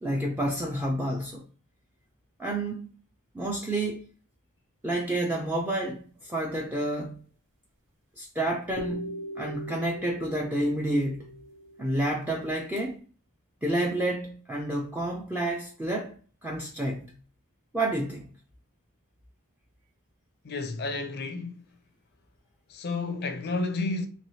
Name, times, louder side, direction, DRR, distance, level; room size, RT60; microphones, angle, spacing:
voice 1, 0.0-1.4 2.4-2.9 3.3-4.0 4.8-7.2 8.2-11.3 11.8-13.0 13.6-17.1 17.7-18.3, right 1 dB, 10° right, 0.4 m, -29 dB
sound 1, 8.8-12.8, equal, 55° right, 0.7 m, -41 dB
voice 2, 20.4-21.6 22.7-24.1, left 3 dB, 50° left, 0.4 m, -31 dB
3.2 x 3.0 x 2.7 m
head